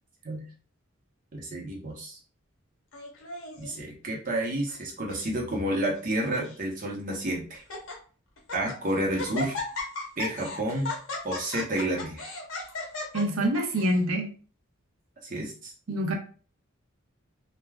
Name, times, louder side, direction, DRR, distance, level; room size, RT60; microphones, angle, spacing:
voice 1, 1.3-2.2 3.6-7.6 8.5-9.6 10.2-10.9 11.2-12.2 15.2-15.7, right 1 dB, 40° right, -1 dB, 0.8 m, -30 dB
Laughter, 2.9-3.7 4.4-4.8 5.1-5.2 5.9-6.6 7.1-7.2 7.5-7.9 8.4-8.8 9.2-14.0, left 3 dB, 85° left, 0.8 m, -36 dB
voice 2, 13.1-14.3 15.9-16.1, equal, 85° right, 2 dB, 0.6 m, -26 dB
3.2 x 2.2 x 2.3 m, 0.40 s
head